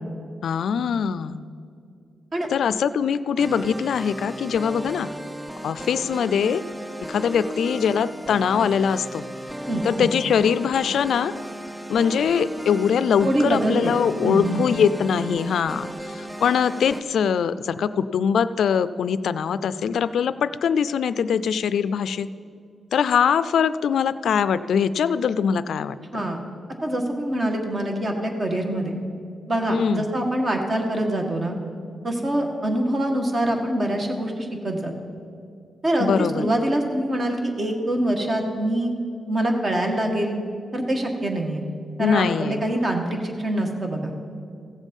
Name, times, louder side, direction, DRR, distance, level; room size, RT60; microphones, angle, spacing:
voice 1, 0.4-1.4 2.5-5.1 5.6-6.6 7.1-9.2 9.8-11.3 11.9-22.3 22.9-26.0 29.7-30.1 36.0-36.5 42.0-42.7, left 7 dB, 85° left, 14 dB, 0.3 m, -22 dB
sound 1, 3.4-17.0, right 1 dB, 10° right, 0.5 m, -35 dB
voice 2, 9.7-10.1 13.2-14.7 26.1-26.4 26.8-28.9 29.5-31.6 32.0-34.9 35.8-38.9 39.3-40.4 40.7-41.6 42.0-44.1, right 1 dB, 35° right, 2 dB, 1.6 m, -24 dB
15.5 x 7.3 x 5.3 m, 2.5 s
cardioid pair, 105°, 0 cm